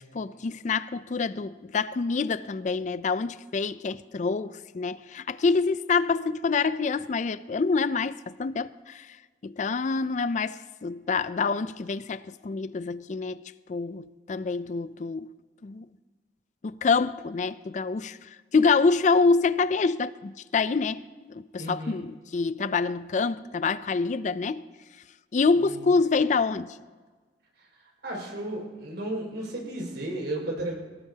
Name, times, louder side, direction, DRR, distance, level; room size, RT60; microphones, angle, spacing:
voice 1, 0.1-9.1 9.4-13.4 13.7-15.3 15.6-15.9 16.6-18.2 18.5-24.6 25.3-26.7, left 4 dB, 45° left, 0.4 m, -26 dB
voice 2, 21.6-22.0 25.6-25.8 27.6-30.8, right 1 dB, 75° right, 5.5 m, -34 dB
23.0 x 18.0 x 2.8 m
head